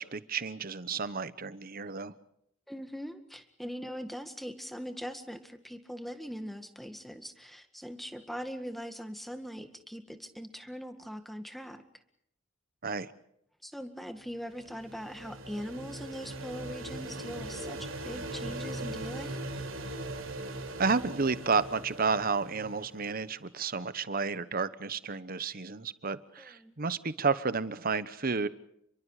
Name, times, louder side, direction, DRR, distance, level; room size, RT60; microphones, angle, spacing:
voice 1, 0.0-2.1 12.8-13.1 20.8-28.5, right 4 dB, 45° right, 14 dB, 1.1 m, -31 dB
voice 2, 2.7-11.8 13.6-19.4 26.4-26.7, equal, ahead, 7 dB, 1.9 m, -41 dB
sound 1, 14.3-23.1, right 1 dB, 90° right, 3.6 m, -40 dB
30.0 x 23.0 x 5.0 m, 0.73 s
head